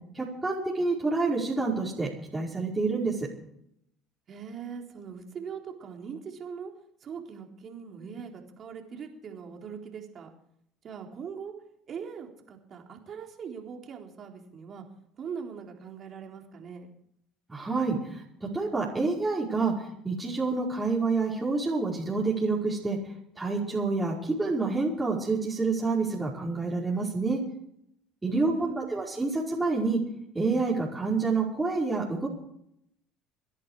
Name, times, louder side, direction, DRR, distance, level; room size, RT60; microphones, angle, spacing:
voice 1, 0.1-3.3 17.5-23.0 23.3-27.4 28.2-30.0 30.3-32.3, right 3 dB, 15° right, -5 dB, 5.1 m, -28 dB
voice 2, 4.3-6.7 7.0-10.3 10.8-11.5 11.9-14.8 15.2-16.9 28.3-29.0, right 6 dB, 45° right, 2 dB, 3.9 m, -41 dB
27.0 x 10.5 x 4.9 m, 0.73 s
hypercardioid pair, 75°, 0 cm